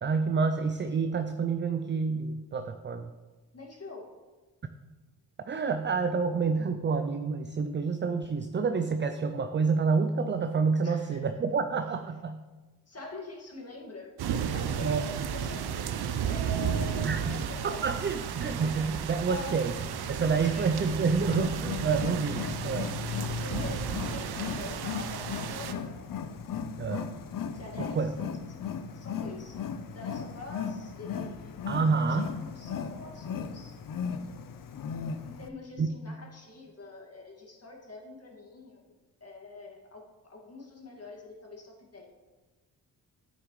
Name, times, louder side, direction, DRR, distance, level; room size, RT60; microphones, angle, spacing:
voice 1, 0.0-3.1 5.5-12.4 14.8-15.0 17.0-17.3 17.6-19.7 20.1-22.9 26.8-27.1 28.0-28.1 31.7-32.3 35.8-35.9, right 5 dB, 25° right, 8 dB, 0.5 m, -28 dB
voice 2, 3.5-4.1 10.8-11.3 12.9-14.1 14.5-15.9 16.3-18.1 19.2-19.6 20.4-21.1 23.4-26.0 27.5-28.1 28.5-28.6 28.9-33.8 35.2-38.8 39.2-42.1, left 2 dB, 35° left, 0 dB, 2.1 m, -45 dB
sound 1, 14.2-25.7, right 8 dB, 60° right, 0.7 m, -33 dB
Wild animals, 21.2-35.5, left 7 dB, 50° left, 0.7 m, -36 dB
8.9 x 6.4 x 3.2 m, 1.3 s
supercardioid pair, 50°, 43 cm